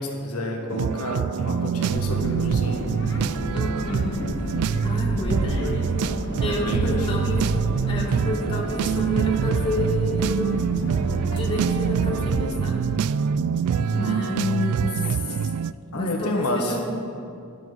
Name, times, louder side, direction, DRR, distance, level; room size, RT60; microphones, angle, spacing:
voice 1, 0.0-2.9 6.4-7.2 13.7-14.2 15.9-16.8, left 1 dB, 90° left, 1 dB, 1.6 m, -29 dB
sound 1, 0.7-15.7, right 7 dB, 80° right, 0.3 m, -25 dB
sound 2, 1.9-12.5, equal, 55° left, 1.8 m, -30 dB
voice 2, 3.5-4.3 4.8-7.5 7.9-10.7 11.3-12.9 13.9-15.5 15.9-16.8, left 2 dB, 25° left, -3 dB, 2.0 m, -30 dB
22.0 x 7.4 x 4.0 m, 2.6 s
head